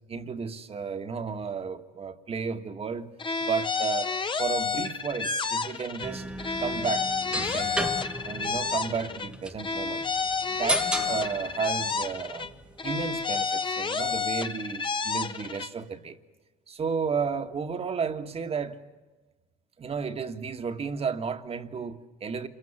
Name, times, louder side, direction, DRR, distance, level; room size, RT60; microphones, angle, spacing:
voice 1, 0.1-3.1 3.4-4.1 4.4-6.3 6.6-7.9 8.2-10.0 10.5-12.5 12.8-16.2 16.7-18.8 19.8-22.5, right 6 dB, 35° right, 1.8 m, -33 dB
sound 1, 3.2-6.1 6.4-9.3 9.6-12.5 12.8-15.7, left 5 dB, 30° left, 1.4 m, -30 dB
sound 2, 6.0-13.2, right 1 dB, 5° right, 1.4 m, -35 dB
28.0 x 23.0 x 7.4 m
supercardioid pair, 85°, 17 cm